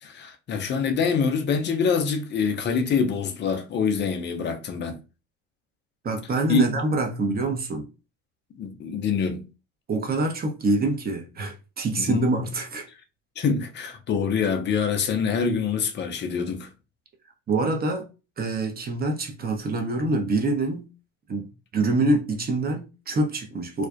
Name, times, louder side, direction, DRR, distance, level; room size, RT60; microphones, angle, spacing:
voice 1, 0.0-5.0 6.5-6.8 7.3-7.4 8.5-9.4 12.0-12.3 13.4-16.7, left 5 dB, 30° left, 0.5 m, -25 dB
voice 2, 6.0-7.9 9.9-12.9 17.5-18.0 18.4-20.9 21.3-21.5 21.7-23.9, right 2 dB, 25° right, 0.8 m, -25 dB
2.4 x 2.1 x 2.4 m
hypercardioid pair, 70°, 38 cm